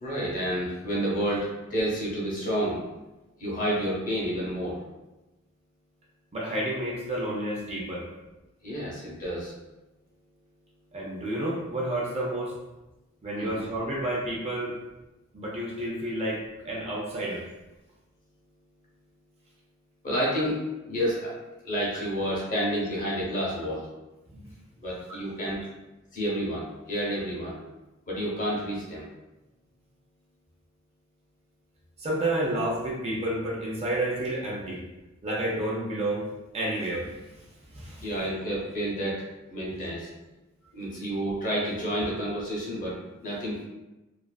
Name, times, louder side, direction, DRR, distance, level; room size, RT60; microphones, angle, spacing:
voice 1, 0.0-2.8 3.4-4.8 8.6-9.5 13.4-13.7 20.0-20.6 20.9-21.3 21.6-23.9 24.8-25.6 26.1-27.5 28.1-29.0 38.0-39.2 39.5-40.1 40.7-43.6, equal, 40° left, -5 dB, 0.7 m, -30 dB
voice 2, 6.3-8.1 10.9-12.5 13.2-14.8 15.3-17.5 24.3-24.5 25.1-25.2 32.0-34.8 35.2-36.3 36.5-38.1, right 1 dB, 30° right, -4 dB, 0.5 m, -30 dB
2.4 x 2.4 x 2.2 m, 1.0 s
head